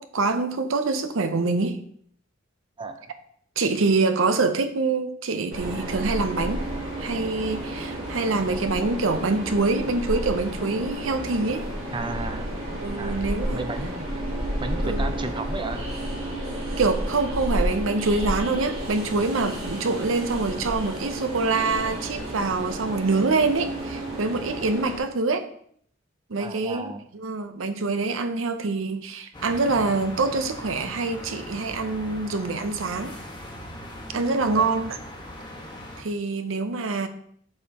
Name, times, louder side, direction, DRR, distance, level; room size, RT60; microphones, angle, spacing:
voice 1, 0.0-1.8 3.6-6.6 7.0-11.6 12.8-13.6 14.7-15.1 16.8-25.4 26.3-33.1 34.1-35.0 36.0-37.1, right 3 dB, 70° right, 0.7 m, -25 dB
voice 2, 2.8-3.1 11.9-12.5 13.0-14.2 14.6-15.9 26.4-27.0 34.6-34.7, right 3 dB, 25° right, 0.6 m, -34 dB
Train, 5.5-25.0, right 1 dB, 85° right, 1.7 m, -31 dB
sound 1, 29.3-36.0, left 1 dB, 20° left, 1.4 m, -40 dB
7.7 x 5.6 x 2.9 m
head